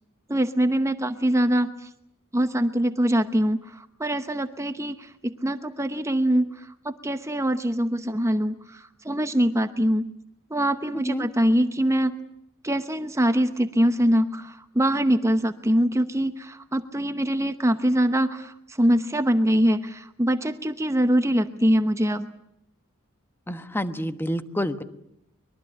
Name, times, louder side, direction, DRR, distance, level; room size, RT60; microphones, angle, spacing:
voice 1, 0.3-1.9 2.3-6.5 6.8-10.1 10.5-12.1 12.6-22.3, equal, 15° right, 9 dB, 0.9 m, -23 dB
voice 2, 10.9-11.3 23.5-24.8, equal, 10° left, 10 dB, 1.2 m, -28 dB
24.0 x 22.0 x 8.7 m, 0.76 s
head